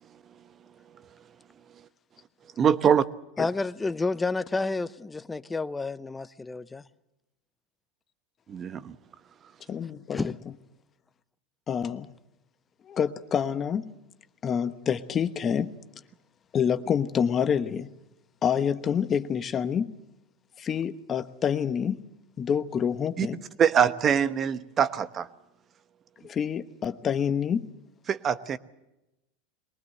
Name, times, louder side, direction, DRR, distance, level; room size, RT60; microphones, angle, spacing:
voice 1, 2.6-3.0 8.5-9.0 23.2-23.3 23.6-25.3 28.1-28.6, right 8 dB, 35° right, 1.1 m, -23 dB
voice 2, 3.4-6.8 10.1-10.3, left 3 dB, 15° left, 0.8 m, -30 dB
voice 3, 9.7-10.3 11.7-12.1 12.8-13.9 14.4-15.7 16.5-17.9 18.4-19.9 20.6-22.0 22.4-23.4 26.2-27.7, left 7 dB, 30° left, 1.1 m, -27 dB
22.5 x 19.0 x 7.9 m
hypercardioid pair, 105°, 0 cm